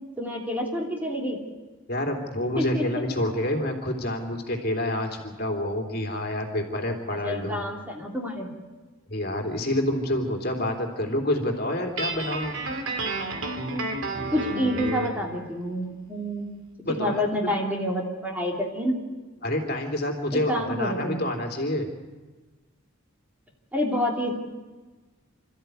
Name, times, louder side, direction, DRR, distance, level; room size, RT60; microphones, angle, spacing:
voice 1, 0.2-1.4 2.6-2.8 7.2-8.5 13.4-13.9 14.3-16.5 17.0-19.0 20.5-21.2 23.7-24.3, equal, 10° right, -1 dB, 3.0 m, -28 dB
voice 2, 1.9-7.6 9.1-12.6 16.8-17.5 19.4-21.9, left 1 dB, 45° left, 2 dB, 3.0 m, -28 dB
Guitar, 12.0-15.2, right 2 dB, 70° right, 2.7 m, -31 dB
27.5 x 13.5 x 9.3 m, 1.3 s
head